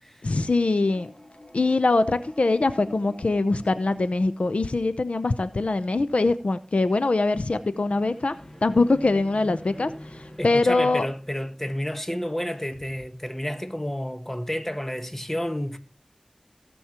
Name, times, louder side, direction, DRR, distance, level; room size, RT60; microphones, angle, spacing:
voice 1, 0.2-1.1 1.5-8.3 8.6-11.1, left 3 dB, 85° left, 0.6 m, -23 dB
sound 1, 0.6-5.0 7.6-12.5, left 1 dB, 30° left, 2.0 m, -46 dB
voice 2, 10.4-15.8, equal, 15° left, 1.2 m, -30 dB
17.0 x 7.1 x 2.9 m
wide cardioid pair, 45°, 2 cm